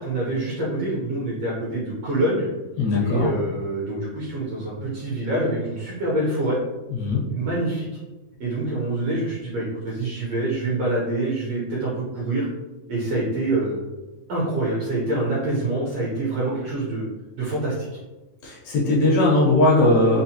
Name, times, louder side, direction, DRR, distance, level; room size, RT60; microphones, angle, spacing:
voice 1, 0.0-2.5 3.0-6.6 7.3-7.9 8.4-12.4 12.9-13.8 14.3-17.0 17.4-17.9, right 2 dB, 70° right, -6 dB, 1.5 m, -26 dB
voice 2, 2.8-3.3 6.9-7.2 18.4-20.2, left 2 dB, 70° left, -5 dB, 1.9 m, -19 dB
5.3 x 2.1 x 2.8 m, 1.1 s
omnidirectional pair, 3.6 m